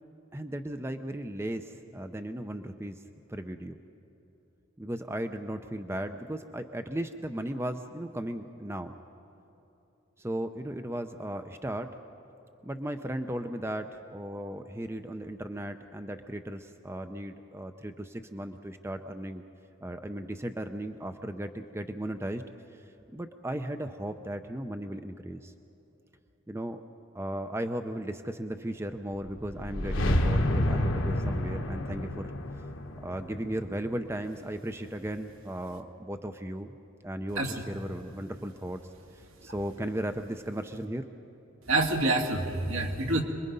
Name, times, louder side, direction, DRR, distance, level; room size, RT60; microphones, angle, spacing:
voice 1, 0.3-3.0 3.3-3.8 4.8-9.0 10.2-12.0 12.6-19.4 19.8-22.4 22.7-25.5 26.5-26.8 27.1-32.3 33.0-36.7 37.0-38.8 39.1-41.1, right 1 dB, 10° right, 8 dB, 0.5 m, -36 dB
sound 1, 29.3-34.4, left 1 dB, 70° left, 1.4 m, -29 dB
voice 2, 41.7-43.2, right 2 dB, 80° right, 2 dB, 2.2 m, -27 dB
27.0 x 21.5 x 5.4 m, 3.0 s
head